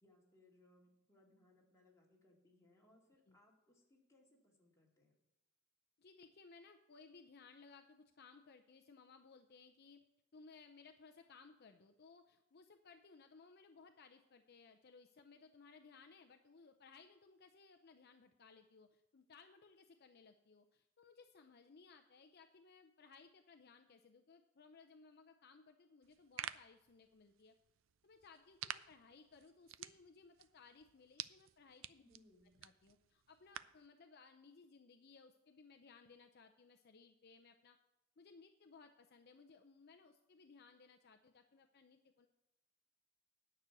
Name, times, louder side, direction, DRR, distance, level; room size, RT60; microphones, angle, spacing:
voice 1, 0.0-5.1 32.0-32.6, left 1 dB, 15° left, -2 dB, 2.2 m, -70 dB
voice 2, 6.0-10.0 10.3-27.6 28.0-32.0 32.6-37.8 38.2-42.3, left 4 dB, 50° left, 7 dB, 0.6 m, -62 dB
sound 1, 26.0-33.9, right 11 dB, 70° right, 0.4 m, -51 dB
9.6 x 6.2 x 8.1 m, 0.97 s
head